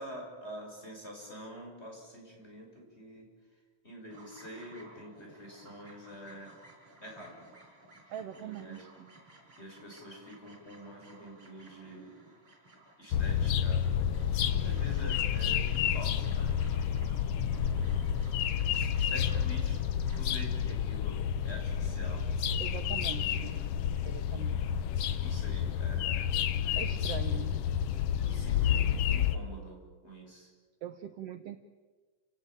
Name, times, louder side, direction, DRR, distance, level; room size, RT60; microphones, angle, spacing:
voice 1, 0.0-3.2 3.8-6.5 7.0-7.4 8.3-8.8 9.6-12.1 13.0-13.8 14.4-17.9 18.6-19.8 20.2-21.2 21.4-22.2 23.1-23.6 24.0-24.5 25.2-26.3 26.6-27.5 28.2-30.5, equal, 20° left, 0 dB, 6.7 m, -47 dB
sound 1, 4.1-20.2, right 2 dB, 40° right, 5.9 m, -56 dB
voice 2, 8.1-9.1 22.6-23.6 24.0-24.7 26.8-27.6 30.8-31.6, right 10 dB, 65° right, 8 dB, 1.7 m, -42 dB
sound 2, 13.1-29.4, left 9 dB, 65° left, 1.6 m, -30 dB
29.5 x 18.0 x 8.9 m, 1.4 s
omnidirectional pair, 3.5 m